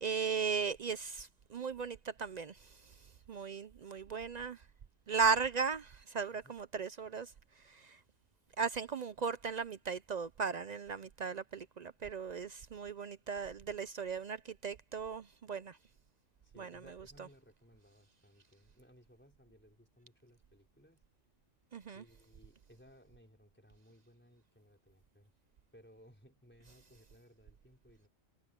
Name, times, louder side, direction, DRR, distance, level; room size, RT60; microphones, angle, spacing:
voice 1, 0.0-2.6 3.3-4.6 5.1-7.3 7.7-8.0 8.6-15.8 16.6-16.8 21.7-22.0, right 5 dB, 60° right, 0.4 m, -36 dB
voice 2, 16.4-21.0 21.9-25.3 25.7-28.1, equal, 10° left, 4.5 m, -62 dB
omnidirectional pair, 1.3 m